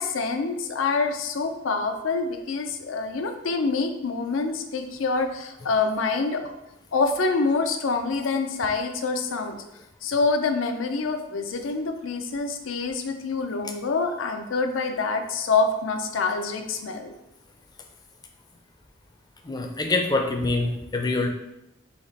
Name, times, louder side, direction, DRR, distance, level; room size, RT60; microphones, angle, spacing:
voice 1, 0.0-6.5 6.9-9.6 10.0-17.1, left 4 dB, 90° left, 6 dB, 0.5 m, -26 dB
voice 2, 19.4-21.3, left 2 dB, 20° left, 3 dB, 0.4 m, -25 dB
4.2 x 2.9 x 4.3 m, 0.91 s
head